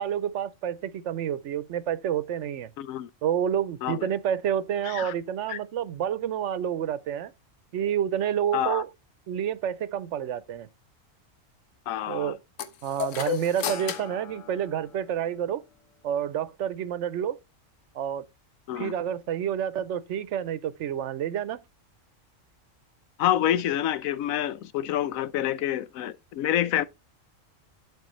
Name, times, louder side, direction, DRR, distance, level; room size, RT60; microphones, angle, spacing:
voice 1, 0.0-2.7 3.2-7.3 7.7-8.9 9.3-10.7 12.1-12.4 12.8-15.6 16.0-17.4 17.9-18.3 18.8-21.6, right 9 dB, 70° right, 0.9 m, -29 dB
voice 2, 2.8-3.1 3.8-4.1 4.8-5.1 5.5-5.6 8.5-8.8 11.9-12.3 18.7-18.9 23.2-26.8, left 11 dB, 90° left, 1.0 m, -27 dB
sound 1, 12.6-15.3, left 8 dB, 70° left, 1.2 m, -34 dB
7.9 x 7.0 x 3.1 m
omnidirectional pair, 1.4 m